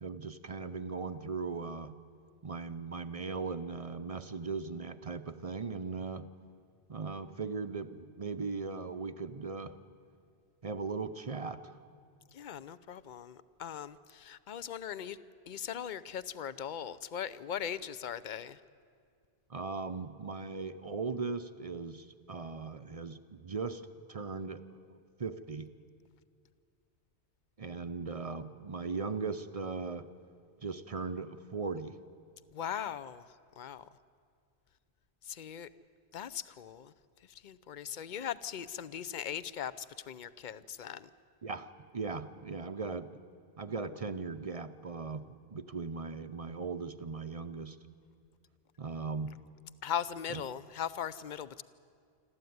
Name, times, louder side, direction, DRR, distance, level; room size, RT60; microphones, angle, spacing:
voice 1, 0.0-2.0 2.4-6.3 6.9-9.7 10.6-11.8 19.5-23.8 24.1-25.7 27.6-30.1 30.6-31.9 41.4-43.2 43.6-47.8 48.8-49.3 50.3-50.4, right 4 dB, 40° right, 10 dB, 0.7 m, -38 dB
voice 2, 12.3-15.2 15.5-18.6 32.5-33.2 33.6-33.9 35.2-35.7 36.1-36.9 37.2-41.1 49.8-51.6, left 8 dB, 50° left, 16 dB, 0.7 m, -39 dB
26.5 x 13.5 x 9.4 m, 2.2 s
omnidirectional pair, 1.1 m